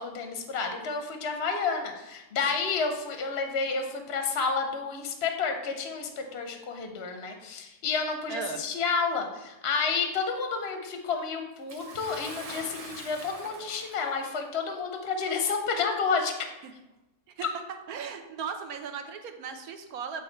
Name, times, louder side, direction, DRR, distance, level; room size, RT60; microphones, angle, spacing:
voice 1, 0.0-16.3, left 5 dB, 55° left, 4 dB, 0.7 m, -30 dB
voice 2, 8.3-8.6 16.6-16.7 17.4-17.5 17.9-20.2, right 6 dB, 70° right, 6 dB, 1.0 m, -37 dB
Bathtub (filling or washing) / Splash splatter, 11.7-14.3 15.2-15.3 16.3-16.4, right 2 dB, 35° right, 0.6 m, -43 dB
8.5 x 3.3 x 4.4 m, 0.99 s
omnidirectional pair, 1.7 m